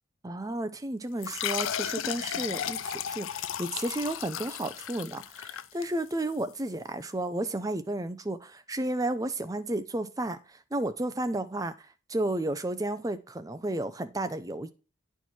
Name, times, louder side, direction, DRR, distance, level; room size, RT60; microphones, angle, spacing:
voice 1, 0.2-14.7, right 1 dB, 15° right, 10 dB, 0.5 m, -32 dB
sound 1, 1.2-6.4, left 10 dB, 75° left, 0.4 m, -34 dB
9.6 x 4.6 x 4.4 m, 0.34 s
head